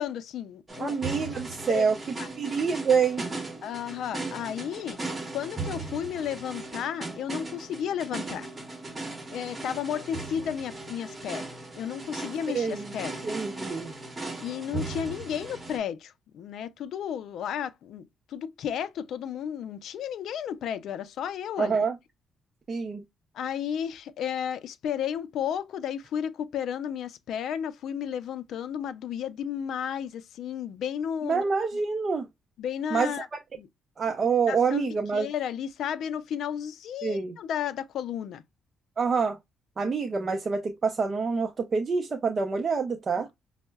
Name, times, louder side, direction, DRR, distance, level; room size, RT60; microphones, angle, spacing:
voice 1, 0.0-1.0 1.7-1.8 2.2-2.3 3.6-5.0 5.3-8.5 9.3-11.5 11.8-13.2 14.4-21.8 23.3-31.4 32.6-33.3 33.6-33.7 34.5-38.4, left 9 dB, 75° left, 0.3 m, -33 dB
sound 1, 0.7-15.8, right 3 dB, 25° right, 1.0 m, -38 dB
voice 2, 0.8-2.0 2.4-3.2 12.5-12.9 13.2-13.9 21.6-22.0 22.7-23.0 31.2-32.3 32.9-33.2 34.0-35.3 37.0-37.3 39.0-39.4 39.8-43.3, right 5 dB, 40° right, 0.5 m, -26 dB
5.3 x 2.0 x 2.2 m
cardioid pair, 90°, 0 cm